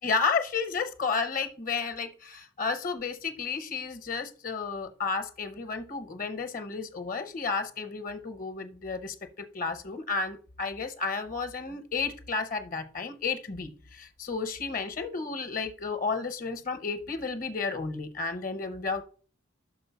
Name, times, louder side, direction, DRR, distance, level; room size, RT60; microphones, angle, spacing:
voice 1, 0.0-9.2 9.5-19.0, left 4 dB, 40° left, 0.7 m, -32 dB
6.2 x 4.5 x 5.6 m
head